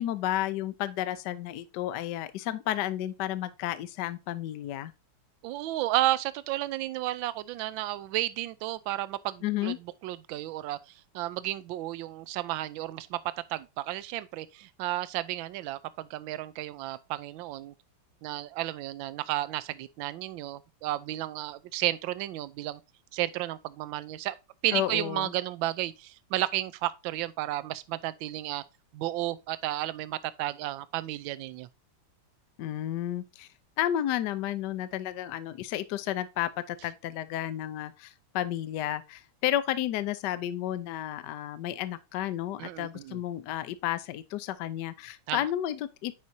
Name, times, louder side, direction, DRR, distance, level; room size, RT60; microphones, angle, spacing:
voice 1, 0.0-4.9 9.4-9.8 24.7-25.3 32.6-33.5 33.8-46.1, left 12 dB, 70° left, 1.0 m, -32 dB
voice 2, 5.4-13.2 13.5-17.7 18.2-22.8 23.1-24.3 24.6-28.6 28.9-31.7 42.6-43.2 45.3-45.4, right 15 dB, 75° right, 1.3 m, -32 dB
9.4 x 4.9 x 2.7 m
omnidirectional pair, 2.3 m